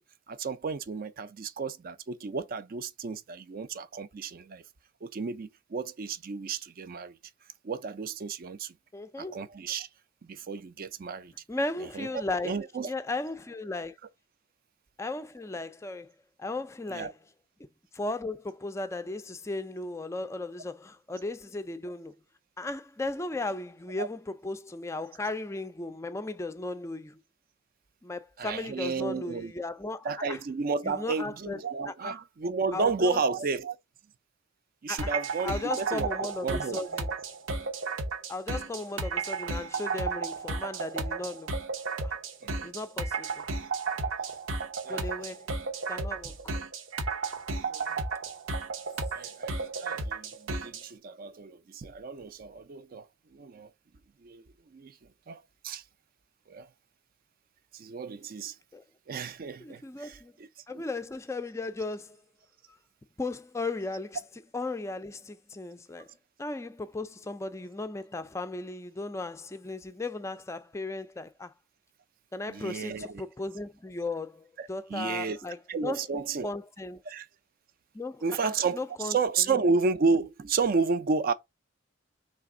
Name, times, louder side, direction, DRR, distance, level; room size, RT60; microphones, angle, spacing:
voice 1, 0.3-4.6 5.0-7.2 7.6-8.7 9.2-9.9 10.2-11.3 11.8-12.9 16.9-17.1 24.0-24.1 28.4-29.5 30.0-33.8 34.8-36.8 42.4-42.5 44.8-45.1 46.2-46.3 47.7-48.0 49.1-53.1 53.3-53.7 54.2-54.4 54.7-55.0 55.3-55.8 56.5-56.7 57.7-58.6 59.1-60.5 60.7-60.8 72.5-73.2 74.6-75.4 75.7-76.5 77.1-77.3 78.2-81.3, right 4 dB, 45° right, 0.4 m, -32 dB
voice 2, 8.9-9.4 11.5-12.6 12.8-14.0 15.0-16.1 16.4-17.1 17.9-22.2 22.6-27.2 28.0-30.4 30.8-31.6 31.9-32.1 32.7-33.2 34.9-35.1 35.4-37.1 38.3-41.5 42.0-42.1 42.6-43.4 44.9-45.5 45.9-46.3 58.7-58.8 59.6-60.3 60.7-62.2 63.2-64.2 64.5-66.1 66.4-71.5 72.3-76.0 76.4-77.0 77.9-79.2, left 2 dB, 15° left, 0.4 m, -36 dB
sound 1, 35.0-50.9, right 4 dB, 80° right, 0.8 m, -33 dB
3.4 x 3.3 x 4.8 m
head